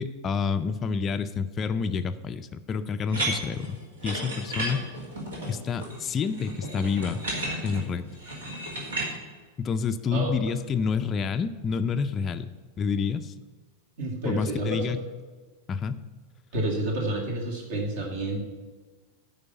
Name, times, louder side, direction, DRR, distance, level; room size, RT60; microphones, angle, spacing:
voice 1, 0.0-4.9 5.5-7.2 7.6-8.1 9.6-12.5 12.8-13.3 14.2-15.0 15.7-16.0, left 5 dB, 25° left, 9 dB, 0.5 m, -28 dB
sound 1, 3.1-9.1, right 1 dB, 70° right, 2.7 m, -33 dB
voice 2, 14.0-15.0 16.5-18.4, right 2 dB, 55° right, 0 dB, 2.4 m, -29 dB
9.7 x 5.2 x 8.0 m, 1.4 s
figure-of-eight pair, 90°, 0 cm